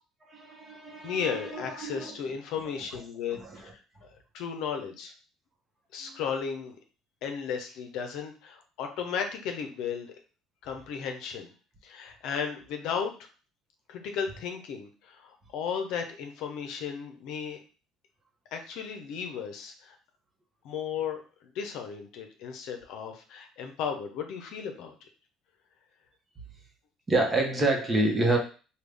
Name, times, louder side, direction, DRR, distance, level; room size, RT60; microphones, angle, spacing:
voice 1, 0.3-2.2 3.3-3.6 6.0-6.2 27.1-28.4, right 2 dB, 25° right, 2 dB, 0.9 m, -28 dB
voice 2, 1.0-5.1 5.9-6.8 7.2-10.1 10.6-11.5 11.8-13.3 13.9-17.6 18.5-20.0 20.6-24.9, left 7 dB, 75° left, 5 dB, 0.6 m, -35 dB
3.6 x 2.3 x 3.3 m, 0.36 s
cardioid pair, 100°, 0 cm